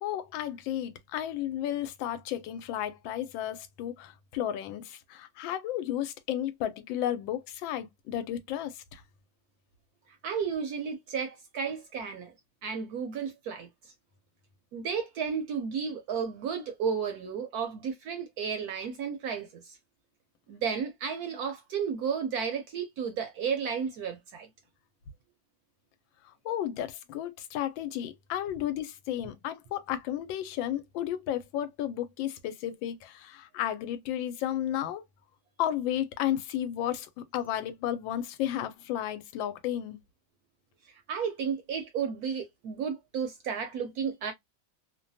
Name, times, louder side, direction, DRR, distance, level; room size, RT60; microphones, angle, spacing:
voice 1, 0.0-9.0 26.2-35.0 35.6-40.0, left 11 dB, 90° left, 1.3 m, -33 dB
voice 2, 10.2-12.3 12.6-13.7 14.7-19.8 20.5-24.5 41.1-44.3, right 6 dB, 70° right, 0.9 m, -33 dB
3.1 x 2.2 x 2.6 m
omnidirectional pair, 2.1 m